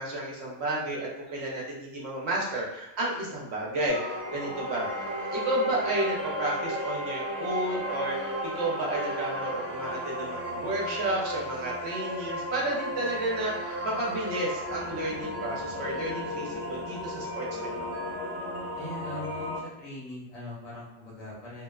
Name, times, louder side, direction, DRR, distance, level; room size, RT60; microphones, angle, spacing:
voice 1, 0.0-5.0 5.3-17.7, right 1 dB, 60° right, -3 dB, 0.8 m, -32 dB
sound 1, 3.9-19.6, equal, 5° right, 0.7 m, -34 dB
voice 2, 18.8-21.6, left 1 dB, 75° left, -5 dB, 1.3 m, -41 dB
2.8 x 2.0 x 2.3 m, 0.95 s
omnidirectional pair, 1.4 m